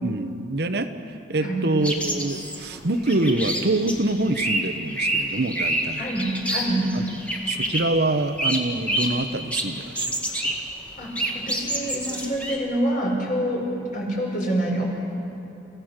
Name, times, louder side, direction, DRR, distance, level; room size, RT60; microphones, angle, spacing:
voice 1, 0.0-0.9 1.3-6.1 6.9-7.0 7.5-10.5, right 2 dB, 65° right, 8 dB, 1.0 m, -25 dB
sound 1, 1.8-8.0 8.4-9.2 9.5-10.6 10.9-12.6, right 1 dB, 10° left, 1.9 m, -28 dB
voice 2, 6.0-6.9 11.0-14.8, right 1 dB, 50° left, -2 dB, 5.1 m, -26 dB
29.0 x 16.0 x 6.6 m, 2.7 s
head